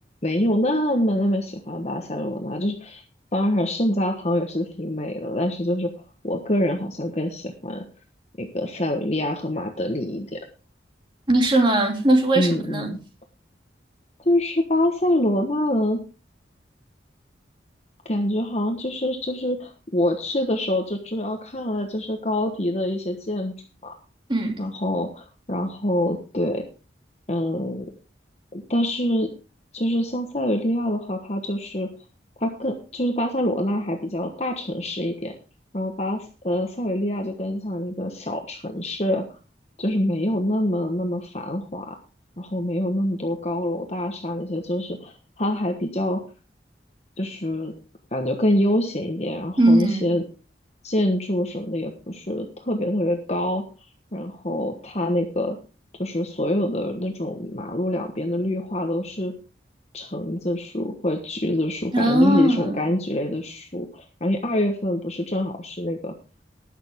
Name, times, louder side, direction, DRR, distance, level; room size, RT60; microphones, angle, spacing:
voice 1, 0.2-3.0 3.3-5.9 6.2-7.9 8.4-10.4 12.3-13.0 14.2-16.0 18.0-23.5 23.8-23.9 24.6-26.6 27.3-27.8 28.5-29.3 29.7-31.9 32.4-35.3 35.7-39.2 39.8-42.0 42.4-46.2 47.2-47.7 48.1-50.2 50.8-53.6 54.1-55.6 56.0-59.3 59.9-66.1, left 1 dB, 35° left, 1.2 m, -25 dB
voice 2, 11.3-12.9 24.3-24.5 49.6-50.1 61.9-62.8, right 1 dB, 25° right, 2.8 m, -19 dB
20.0 x 6.7 x 3.6 m
head